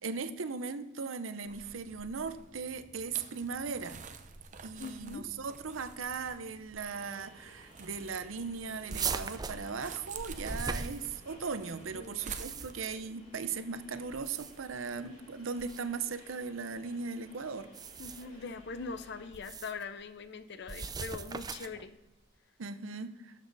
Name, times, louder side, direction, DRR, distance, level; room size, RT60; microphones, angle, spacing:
voice 1, 0.0-4.0 4.6-17.7 22.6-23.3, right 5 dB, 85° right, 11 dB, 0.7 m, -38 dB
sound 1, 1.4-12.8, right 6 dB, 40° right, 0.7 m, -50 dB
voice 2, 4.8-5.2 11.9-12.7 18.0-21.9, left 4 dB, 60° left, 12 dB, 0.7 m, -42 dB
sound 2, 6.8-19.3, left 1 dB, 45° left, 4.0 m, -58 dB
sound 3, 8.9-11.5 12.1-12.9 14.1-14.8 15.6-15.8 17.6-18.4 19.3-19.8 20.7-21.8, right 5 dB, 20° right, 0.4 m, -39 dB
12.5 x 7.4 x 4.0 m, 1.1 s
head